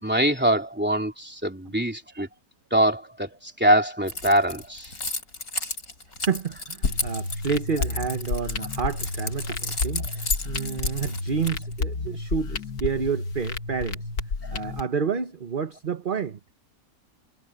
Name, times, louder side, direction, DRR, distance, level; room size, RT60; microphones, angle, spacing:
voice 1, 0.0-2.3 2.7-3.3 3.6-4.9, right 1 dB, 5° right, 3.2 m, -23 dB
Keys jangling, 4.1-11.8, left 3 dB, 65° left, 5.6 m, -33 dB
voice 2, 6.3-14.0 14.5-16.4, right 6 dB, 35° right, 1.2 m, -29 dB
sound 1, 6.8-14.8, left 3 dB, 85° left, 2.2 m, -31 dB
omnidirectional pair, 1.6 m